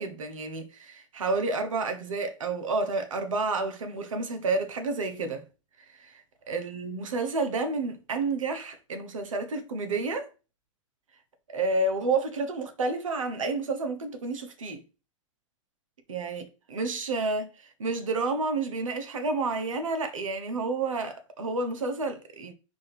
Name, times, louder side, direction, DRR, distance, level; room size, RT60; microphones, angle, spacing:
voice 1, 0.0-5.4 6.0-6.2 6.5-10.3 11.5-14.8 16.1-22.5, right 3 dB, 85° right, 1.0 m, -30 dB
4.7 x 2.6 x 4.2 m
hypercardioid pair, 115°, 16 cm